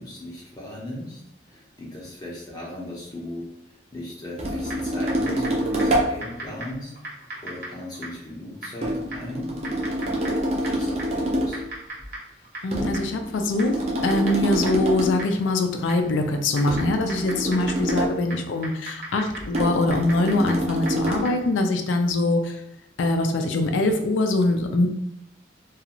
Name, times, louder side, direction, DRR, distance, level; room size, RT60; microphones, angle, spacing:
voice 1, 0.0-6.9 7.2-10.1 10.5-11.6, left 1 dB, 20° left, -4 dB, 0.6 m, -37 dB
sound 1, 4.4-6.2 8.8-11.7 12.7-15.3 16.7-18.2 19.5-21.3, equal, 35° right, 0.5 m, -26 dB
Typing, 4.6-21.5, right 1 dB, 50° right, 1.0 m, -40 dB
voice 2, 12.6-13.7 14.0-22.6 23.0-24.9, left 2 dB, 80° left, 5 dB, 0.4 m, -23 dB
2.5 x 2.3 x 2.9 m, 0.77 s
head